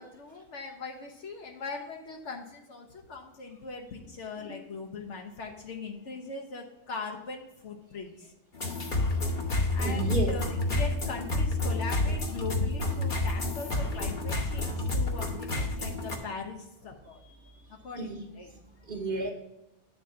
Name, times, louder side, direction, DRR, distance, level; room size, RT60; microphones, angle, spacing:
voice 1, 0.0-8.3 9.7-17.2 17.7-18.5, left 4 dB, 70° left, 2 dB, 1.1 m, -40 dB
sound 1, 8.5-16.2, left 2 dB, 45° left, 1.1 m, -29 dB
voice 2, 9.8-10.3 17.4-17.6 18.0-18.2 18.5-19.3, right 2 dB, 45° right, -1 dB, 1.2 m, -33 dB
9.4 x 3.7 x 5.5 m, 0.93 s
omnidirectional pair, 1.2 m